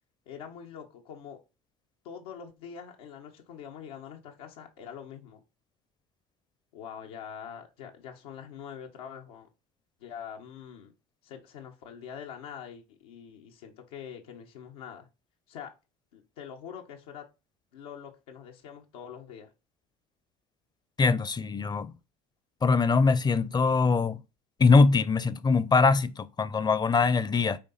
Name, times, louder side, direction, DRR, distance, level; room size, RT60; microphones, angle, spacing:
voice 1, 0.3-1.4 2.0-5.4 6.7-9.5 10.0-10.9 11.2-15.1 15.5-15.7 16.1-17.3 17.7-19.5, left 8 dB, 85° left, 1.5 m, -44 dB
voice 2, 21.0-21.9 22.6-24.2 24.6-27.6, left 4 dB, 20° left, 0.7 m, -22 dB
8.6 x 2.9 x 5.7 m
supercardioid pair, 85°, 19 cm